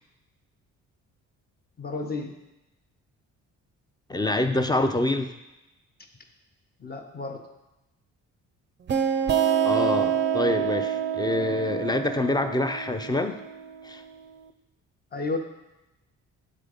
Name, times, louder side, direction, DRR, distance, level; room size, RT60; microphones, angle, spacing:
voice 1, 1.8-2.3 6.8-7.4 15.1-15.4, left 3 dB, 30° left, 4 dB, 0.9 m, -32 dB
voice 2, 4.1-5.3 9.6-13.4 13.8-14.0, left 2 dB, 15° left, 8 dB, 0.5 m, -26 dB
sound 1, 8.9-14.3, right 9 dB, 35° right, 0.5 m, -27 dB
7.5 x 3.8 x 5.1 m, 0.96 s
cardioid pair, 90°, 30 cm